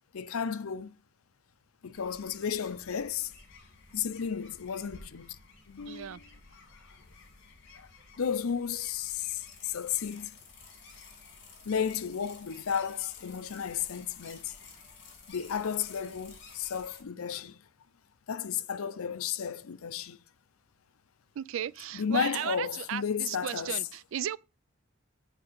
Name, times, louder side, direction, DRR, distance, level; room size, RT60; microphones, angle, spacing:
voice 1, 0.1-1.0 1.8-3.3 3.9-5.4 5.7-6.3 7.8-7.9 8.2-10.3 11.7-14.5 15.3-17.6 18.3-20.2 21.9-23.8, left 7 dB, 80° left, 0.5 m, -33 dB
sound 1, 1.9-17.0, left 4 dB, 55° left, 2.5 m, -53 dB
voice 2, 5.9-6.2 21.4-24.4, right 10 dB, 65° right, 0.3 m, -35 dB
8.3 x 3.7 x 6.7 m
head